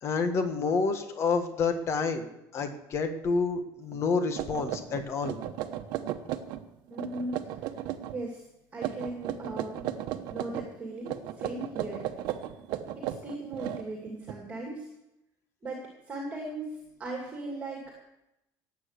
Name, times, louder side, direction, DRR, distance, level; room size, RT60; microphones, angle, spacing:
voice 1, 0.0-2.3 2.5-5.4, left 4 dB, 35° left, 7 dB, 1.5 m, -28 dB
sound 1, 3.9-4.0 4.4-6.6 6.9-8.2 8.8-10.7 11.1-14.3, right 12 dB, 70° right, 1.1 m, -35 dB
voice 2, 6.9-7.5 8.1-8.4 8.7-9.8 10.3-12.0 13.0-14.9 15.6-18.0, right 2 dB, 20° right, -1 dB, 2.5 m, -38 dB
18.5 x 8.5 x 6.7 m, 0.89 s
cardioid pair, 165°, 8 cm